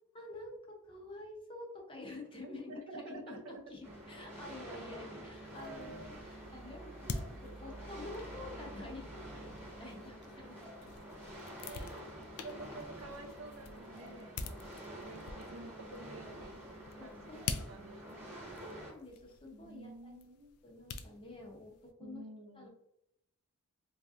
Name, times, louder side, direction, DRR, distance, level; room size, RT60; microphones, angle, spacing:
voice 1, 0.1-10.6 11.7-12.0 12.4-12.6 17.0-17.4 17.7-17.8 18.3-20.1 20.6-22.2 22.5-22.7, left 2 dB, 25° left, 1 dB, 0.6 m, -49 dB
voice 2, 2.4-3.6 4.7-4.8 5.6-6.4 7.2-7.5 11.6-11.9 12.4-14.5 14.9-16.6 17.0-18.3 19.5-20.6 22.0-22.7, right 2 dB, 65° right, 4 dB, 0.5 m, -50 dB
sound 1, 3.6-11.2, right 2 dB, 40° right, 0.9 m, -55 dB
sound 2, 3.8-18.9, right 1 dB, 10° right, 0.8 m, -49 dB
sound 3, 5.4-21.9, left 5 dB, 90° left, 0.4 m, -47 dB
3.1 x 2.7 x 2.4 m, 0.79 s
head